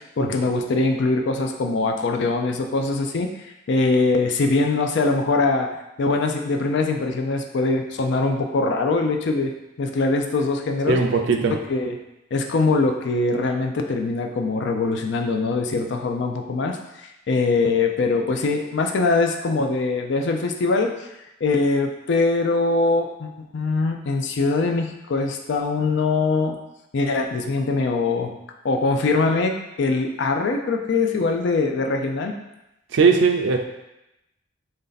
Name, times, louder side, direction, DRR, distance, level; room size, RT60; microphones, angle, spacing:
voice 1, 0.0-3.3 3.7-5.7 6.0-9.5 9.8-11.0 11.5-11.9 12.3-20.9 21.4-26.6 26.9-28.3 28.6-32.4, left 3 dB, 65° left, 4 dB, 0.4 m, -22 dB
voice 2, 10.9-11.6 32.9-33.6, right 4 dB, 65° right, 4 dB, 0.4 m, -19 dB
3.2 x 2.6 x 3.9 m, 0.90 s
head